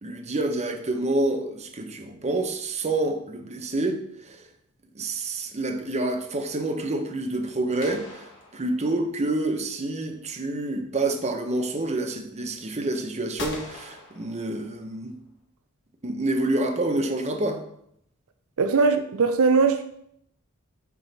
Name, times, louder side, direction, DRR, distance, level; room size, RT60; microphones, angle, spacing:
voice 1, 0.0-4.4 4.9-8.3 8.5-15.1 16.0-17.6, right 2 dB, 30° right, 0.7 m, -28 dB
sound 1, 7.8-9.3 13.4-15.0, left 3 dB, 60° left, 1.6 m, -40 dB
voice 2, 18.6-19.8, right 4 dB, 70° right, 0.5 m, -20 dB
9.2 x 3.7 x 4.0 m
head